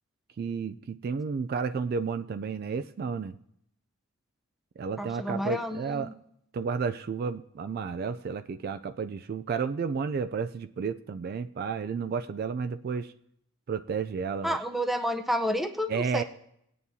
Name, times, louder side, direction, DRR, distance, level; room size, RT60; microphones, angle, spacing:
voice 1, 0.4-3.4 4.8-6.1 6.5-13.1 13.7-14.6 15.9-16.2, right 5 dB, 50° right, 11 dB, 0.3 m, -32 dB
voice 2, 5.0-6.1 14.4-16.2, equal, ahead, 5 dB, 0.6 m, -30 dB
18.5 x 9.4 x 2.7 m, 0.74 s
head